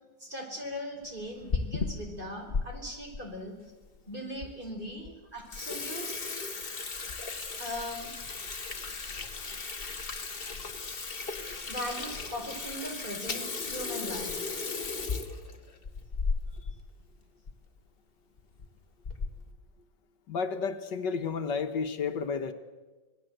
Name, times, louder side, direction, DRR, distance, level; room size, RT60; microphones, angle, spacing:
voice 1, 0.2-3.5 4.1-6.2 7.6-8.1 11.7-14.5, equal, 25° right, 2 dB, 4.9 m, -39 dB
Water tap faucet / Sink (filling or washing), 1.2-2.7 3.1-3.2 3.9-4.0 4.4-4.5 4.9-5.1 5.4-16.8 17.1-17.2 17.5-17.6 18.4-18.7 19.0-19.5, left 4 dB, 30° left, 1.7 m, -35 dB
voice 2, 20.3-22.5, left 5 dB, 70° left, 7 dB, 1.8 m, -31 dB
26.5 x 20.0 x 7.9 m, 1.2 s
omnidirectional pair, 2.0 m